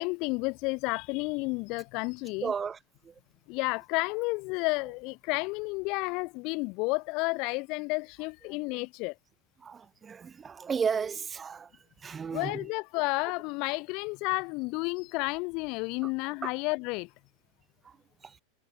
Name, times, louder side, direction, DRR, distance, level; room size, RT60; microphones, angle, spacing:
voice 1, 0.0-2.5 3.5-9.1 12.3-17.1, left 27 dB, 45° left, 0.5 m, -31 dB
voice 2, 2.4-2.8 3.0-3.1 9.6-11.7 12.0-12.6 16.4-16.5, right 6 dB, 20° right, 0.5 m, -33 dB
figure-of-eight pair, 85°, 0 cm